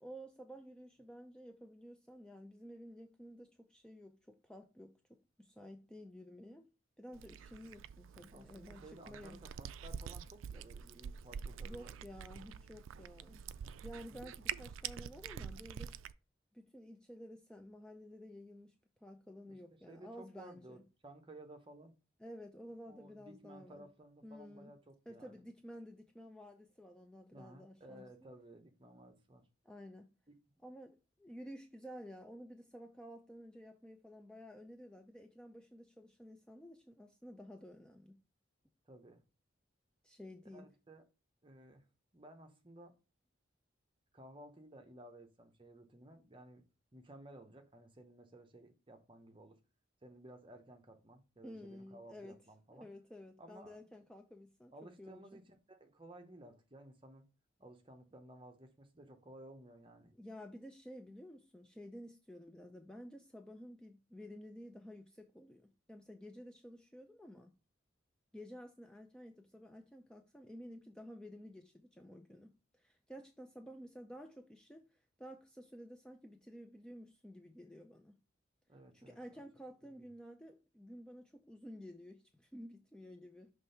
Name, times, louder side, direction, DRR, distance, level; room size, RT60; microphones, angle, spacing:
voice 1, 0.0-6.7 7.0-9.4 11.6-13.5 13.8-15.9 16.5-18.8 19.0-20.8 22.2-23.9 24.2-24.7 25.1-28.3 29.6-30.1 30.6-38.2 40.0-40.7 51.4-52.4 52.7-55.4 60.1-67.5 68.3-78.2 78.9-83.5, equal, 5° left, 0.4 m, -52 dB
Cat, 7.1-16.1, right 8 dB, 85° right, 0.3 m, -46 dB
voice 2, 8.3-12.0 14.1-14.3 19.5-21.9 22.9-25.4 27.3-29.5 38.9-39.2 40.5-41.0 41.4-41.9 42.1-43.0 44.1-46.6 46.9-49.6 50.0-52.9 53.4-53.8 54.7-57.2 57.6-60.1 78.7-79.4 79.8-80.1, right 1 dB, 25° right, 0.8 m, -56 dB
6.0 x 3.3 x 5.4 m
head